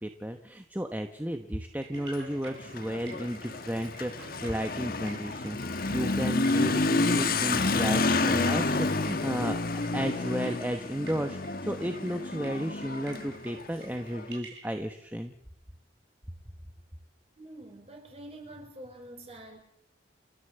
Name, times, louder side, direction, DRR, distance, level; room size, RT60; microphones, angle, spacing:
voice 1, 0.0-9.6 9.9-15.3, equal, 10° right, 6 dB, 1.0 m, -33 dB
sound 1, 1.8-14.8, right 3 dB, 70° right, 7.4 m, -51 dB
Motorcycle / Accelerating revving vroom, 1.9-14.3, left 3 dB, 50° left, 1.4 m, -29 dB
voice 2, 17.4-19.6, right 1 dB, 35° right, 3 dB, 5.2 m, -46 dB
30.0 x 11.5 x 7.9 m, 0.76 s
head